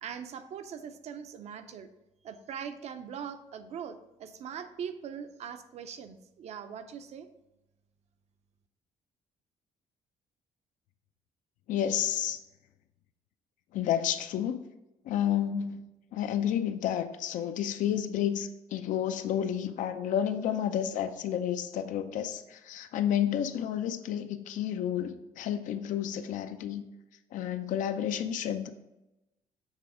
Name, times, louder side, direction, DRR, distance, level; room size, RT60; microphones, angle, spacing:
voice 1, 0.0-1.9 2.2-7.3, right 7 dB, 55° right, 10 dB, 0.6 m, -41 dB
voice 2, 11.7-12.4 13.7-14.6 15.0-15.8 16.1-26.8 27.3-28.7, left 10 dB, 70° left, 10 dB, 0.6 m, -30 dB
7.3 x 3.4 x 4.9 m, 0.96 s
cardioid pair, 130°, 13 cm